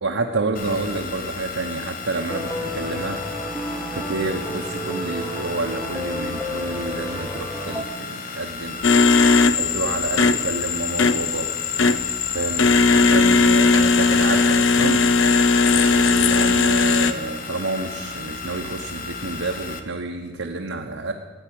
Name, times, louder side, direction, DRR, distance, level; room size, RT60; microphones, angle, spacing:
voice 1, 0.0-3.2 3.9-8.8 9.5-11.5 12.3-15.0 15.7-21.1, right 2 dB, 85° right, 1 dB, 1.1 m, -29 dB
sound 1, 0.5-19.8, left 4 dB, 45° left, 1.1 m, -34 dB
sound 2, 2.3-7.8, equal, 5° right, 1.3 m, -31 dB
sound 3, 8.8-17.1, left 4 dB, 85° left, 0.7 m, -18 dB
14.0 x 8.9 x 8.8 m, 1.4 s
head